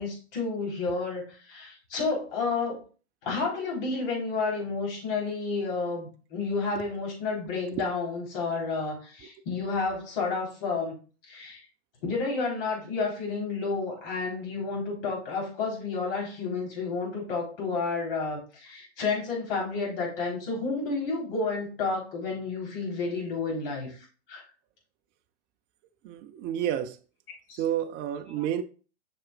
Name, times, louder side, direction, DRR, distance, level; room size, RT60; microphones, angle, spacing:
voice 1, 0.0-2.8 3.2-11.0 11.3-11.6 12.0-24.0 24.3-24.4 27.5-27.6 28.3-28.5, left 4 dB, 55° left, 3.8 m, -31 dB
voice 2, 26.0-27.0 27.6-28.6, right 10 dB, 30° right, 0.6 m, -30 dB
7.4 x 6.0 x 2.4 m
hypercardioid pair, 110°, 34 cm